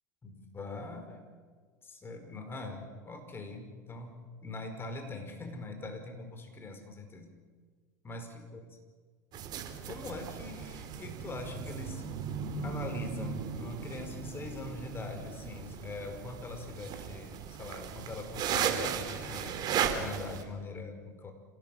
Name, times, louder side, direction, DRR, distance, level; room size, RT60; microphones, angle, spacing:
voice 1, 0.2-1.2 1.8-7.3 8.0-8.6 9.9-12.0 12.6-19.6 20.0-21.3, left 3 dB, 25° left, 6 dB, 4.9 m, -42 dB
sound 1, 9.3-20.4, right 7 dB, 45° right, 3.3 m, -36 dB
26.0 x 18.0 x 8.8 m, 1.6 s
hypercardioid pair, 85°, 10 cm